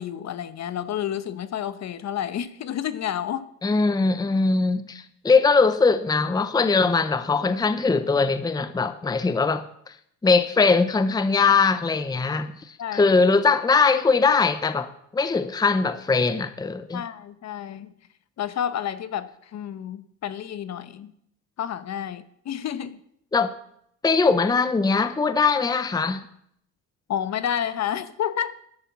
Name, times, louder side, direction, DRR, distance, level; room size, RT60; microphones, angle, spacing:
voice 1, 0.0-3.5 12.8-13.1 16.9-17.9 18.4-21.1 21.6-23.0 27.1-28.5, left 9 dB, 50° left, 1.0 m, -30 dB
voice 2, 3.6-9.7 10.2-12.5 12.9-17.0 23.3-23.5 24.0-26.2, left 4 dB, 10° left, 0.7 m, -21 dB
12.0 x 10.0 x 7.2 m
cardioid pair, 110°, 35 cm